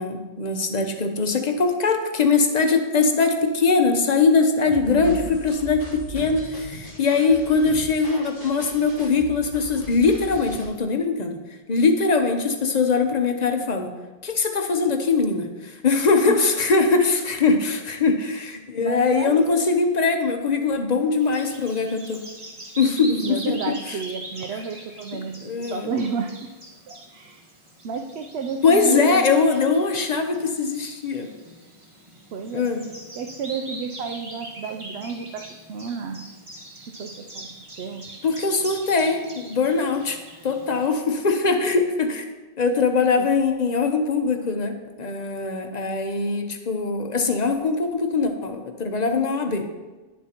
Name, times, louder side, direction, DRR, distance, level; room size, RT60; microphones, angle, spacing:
voice 1, 0.0-11.4 11.7-13.9 14.2-22.2 22.8-23.6 25.4-25.9 28.6-31.3 32.5-32.9 38.2-40.2 40.4-42.3 42.6-49.7, left 4 dB, 45° left, 6 dB, 0.8 m, -21 dB
sound 1, 4.7-10.7, right 1 dB, 55° right, 2.5 m, -39 dB
voice 2, 4.8-5.3 16.3-16.4 17.1-17.2 18.8-19.5 23.2-26.5 26.9-27.4 27.8-29.2 32.3-32.7 33.2-36.2 36.9-37.5 37.8-38.1 40.3-40.5 43.2-43.3, right 6 dB, 75° right, 4 dB, 0.8 m, -31 dB
Bird vocalization bird call bird song, 21.2-40.9, right 1 dB, 30° right, 1.3 m, -42 dB
10.5 x 7.3 x 2.9 m, 1.2 s
omnidirectional pair, 1.1 m